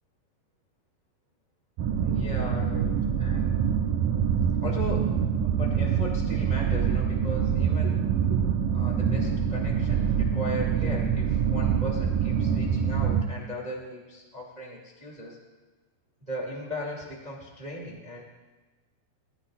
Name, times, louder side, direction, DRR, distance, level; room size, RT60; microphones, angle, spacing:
sound 1, 1.8-13.2, right 7 dB, 90° right, 2.0 m, -25 dB
voice 1, 2.0-3.5 4.5-15.4 16.2-18.2, equal, 30° right, -3 dB, 0.8 m, -38 dB
23.5 x 14.5 x 2.5 m, 1.3 s
omnidirectional pair, 5.2 m